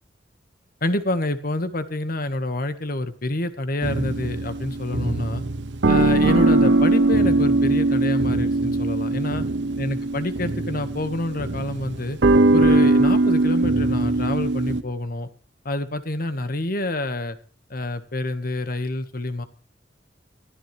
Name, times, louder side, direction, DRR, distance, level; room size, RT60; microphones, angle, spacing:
voice 1, 0.8-5.4 5.9-9.4 9.8-12.2 12.5-15.3 15.6-17.4 17.7-19.4, left 2 dB, 50° left, 10 dB, 1.6 m, -27 dB
sound 1, 3.8-14.8, right 2 dB, 70° right, 0.9 m, -20 dB
22.0 x 15.0 x 3.4 m, 0.39 s
head